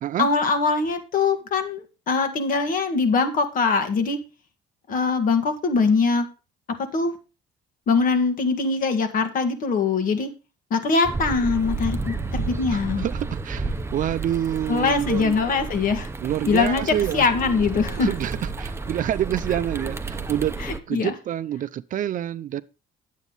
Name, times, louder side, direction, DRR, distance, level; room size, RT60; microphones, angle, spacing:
voice 1, 0.2-4.2 4.9-6.3 6.9-7.1 7.9-10.3 10.7-13.1 14.7-16.1 16.5-16.9 17.1-18.1 20.6-21.1, left 4 dB, 55° left, 1.9 m, -22 dB
sound 1, 11.0-20.8, right 3 dB, 15° right, 0.8 m, -31 dB
voice 2, 12.7-15.4 16.2-17.3 18.0-20.6 20.9-22.6, right 11 dB, 50° right, 0.5 m, -27 dB
9.2 x 8.2 x 3.9 m
cardioid pair, 110°, 17 cm